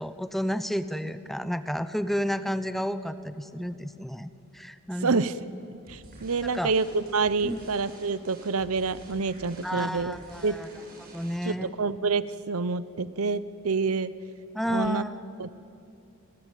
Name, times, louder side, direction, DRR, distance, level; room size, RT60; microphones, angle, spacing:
voice 1, 0.0-5.2 6.4-6.7 7.4-7.6 9.6-10.7 11.0-11.7 14.5-15.1, equal, ahead, 12 dB, 0.8 m, -31 dB
voice 2, 5.0-5.3 5.7-10.2 10.4-10.6 11.4-14.1 14.7-15.0 15.4-15.5, right 4 dB, 85° right, 15 dB, 0.8 m, -27 dB
sound 1, 5.9-11.6, right 1 dB, 45° right, 7.6 m, -49 dB
30.0 x 21.5 x 9.2 m, 2.8 s
head